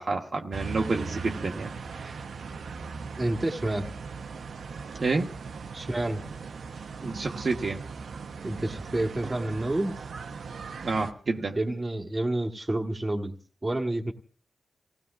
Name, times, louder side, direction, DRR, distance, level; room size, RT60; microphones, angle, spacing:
voice 1, 0.0-1.7 2.0-2.2 5.0-5.3 7.0-7.8 10.8-11.6, right 3 dB, 50° right, 1 dB, 1.0 m, -29 dB
sound 1, 0.5-11.1, right 5 dB, 80° right, 0.7 m, -39 dB
voice 2, 3.2-3.9 5.7-6.2 8.4-9.9 11.5-13.3 13.6-14.1, right 1 dB, 20° right, 3 dB, 1.3 m, -29 dB
30.0 x 17.0 x 2.4 m, 0.42 s
wide cardioid pair, 115°, 0 cm